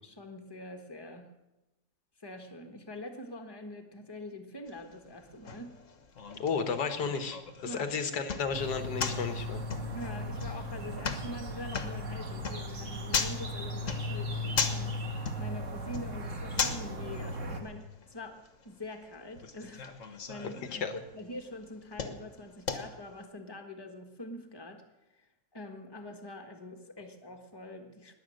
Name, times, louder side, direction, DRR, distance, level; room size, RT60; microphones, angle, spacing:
voice 1, 0.0-1.3 2.2-5.8 7.6-7.8 9.9-15.0 15.4-24.8 25.1-28.1, left 1 dB, 15° left, 4 dB, 1.4 m, -44 dB
sound 1, 4.7-23.2, left 5 dB, 50° left, 1.5 m, -39 dB
voice 2, 6.4-9.6 20.7-20.9, left 5 dB, 85° left, 8 dB, 1.9 m, -33 dB
sound 2, 8.5-17.6, left 1 dB, 50° right, 1.9 m, -37 dB
20.5 x 8.2 x 6.5 m, 0.98 s
omnidirectional pair, 1.7 m